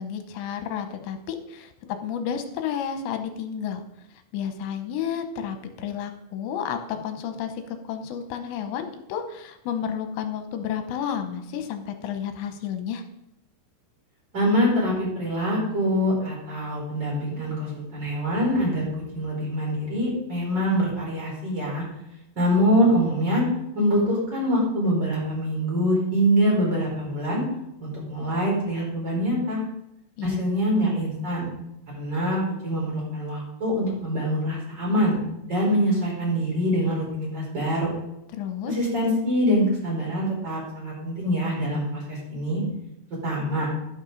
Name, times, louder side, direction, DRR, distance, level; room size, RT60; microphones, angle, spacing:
voice 1, 0.0-3.8 4.3-7.5 7.8-13.0 30.2-30.4 38.3-38.7, left 8 dB, 80° left, 7 dB, 3.1 m, -31 dB
voice 2, 14.3-18.9 19.1-21.8 22.4-23.4 23.7-27.4 27.8-29.6 30.2-31.5 31.9-35.2 35.5-37.9 38.7-42.6 43.2-43.7, equal, 25° right, -3 dB, 4.7 m, -24 dB
11.5 x 11.5 x 4.0 m, 0.83 s
omnidirectional pair, 5.2 m